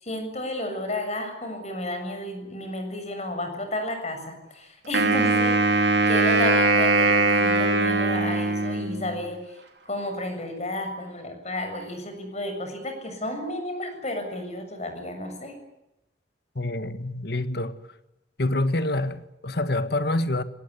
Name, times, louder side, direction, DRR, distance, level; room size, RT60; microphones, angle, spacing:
voice 1, 0.0-5.8 6.1-9.6 9.9-15.6, left 1 dB, 40° left, 6.9 m, -32 dB
Wind instrument woodwind instrument, 4.9-9.2, right 3 dB, 70° right, 4.3 m, -21 dB
voice 2, 16.5-17.8 18.4-20.4, left 2 dB, 60° left, 1.6 m, -26 dB
25.5 x 19.0 x 9.7 m
head